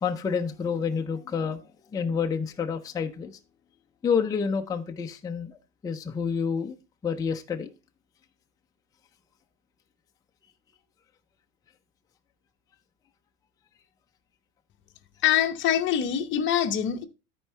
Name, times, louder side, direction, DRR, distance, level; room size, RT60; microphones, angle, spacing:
voice 1, 0.0-1.6 1.9-3.4 4.0-5.6 5.8-6.8 7.0-7.7, left 6 dB, 10° left, 0.4 m, -28 dB
voice 2, 15.2-17.0, left 10 dB, 25° left, 0.8 m, -24 dB
13.0 x 4.6 x 3.2 m
supercardioid pair, 130°, 45 cm